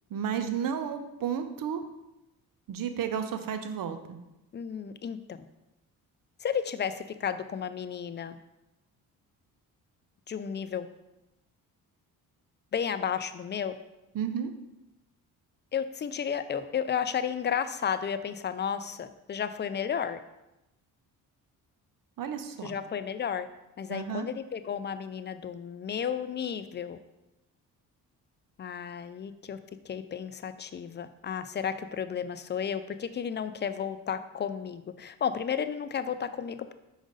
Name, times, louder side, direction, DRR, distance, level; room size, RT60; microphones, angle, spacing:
voice 1, 0.1-1.8 2.7-4.2 14.1-14.5 22.2-22.7 23.9-24.3, right 8 dB, 60° right, 9 dB, 0.7 m, -32 dB
voice 2, 4.5-5.4 6.4-8.4 10.3-10.9 12.7-13.8 15.7-20.2 22.6-23.5 23.8-27.0 28.6-29.6 29.8-36.7, left 7 dB, 30° left, 11 dB, 0.4 m, -33 dB
5.1 x 5.1 x 3.9 m, 0.94 s
cardioid pair, 70°, 38 cm